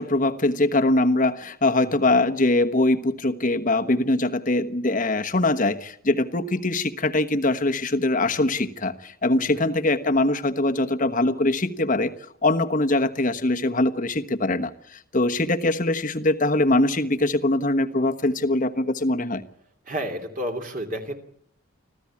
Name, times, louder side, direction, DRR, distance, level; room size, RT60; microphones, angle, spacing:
voice 1, 0.0-12.1 12.4-14.7 15.1-19.4, left 2 dB, 40° left, 1.2 m, -22 dB
voice 2, 9.4-9.7 19.8-21.2, equal, 40° right, 2.9 m, -31 dB
26.0 x 15.5 x 8.6 m
head